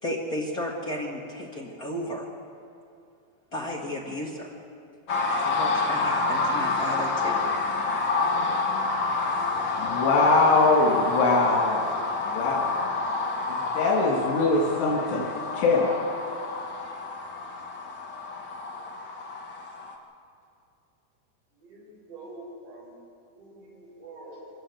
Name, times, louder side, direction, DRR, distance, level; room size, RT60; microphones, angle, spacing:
voice 1, 0.0-2.3 3.5-4.5 5.3-7.4, left 1 dB, 65° left, -3 dB, 0.8 m, -33 dB
sound 1, 5.1-19.9, left 3 dB, 40° left, 1.7 m, -28 dB
voice 2, 9.8-12.8 13.5-15.3 15.5-15.9, left 3 dB, 85° left, -4 dB, 4.8 m, -23 dB
voice 3, 21.5-22.9 23.4-24.5, right 2 dB, 85° right, -4 dB, 8.1 m, -45 dB
24.5 x 16.5 x 7.5 m, 2.5 s
omnidirectional pair, 4.8 m